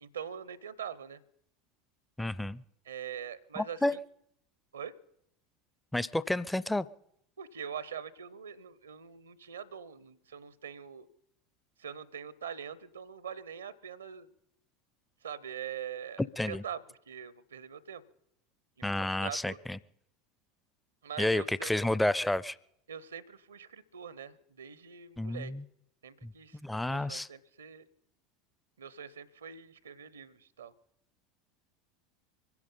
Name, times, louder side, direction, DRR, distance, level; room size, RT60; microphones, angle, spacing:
voice 1, 0.0-1.2 2.9-4.0 4.7-4.9 7.4-11.1 11.8-14.3 15.2-18.0 18.8-19.6 21.0-21.7 22.9-25.5 26.0-26.6 26.8-27.9 28.8-30.7, right 8 dB, 80° right, 21 dB, 0.7 m, -43 dB
voice 2, 2.2-2.6 3.6-4.0 5.9-6.9 16.4-16.6 18.8-19.8 21.2-22.6 25.2-25.6 26.2-27.3, left 1 dB, 5° left, 18 dB, 0.5 m, -31 dB
23.5 x 10.5 x 5.6 m, 0.74 s
hypercardioid pair, 80°, 0 cm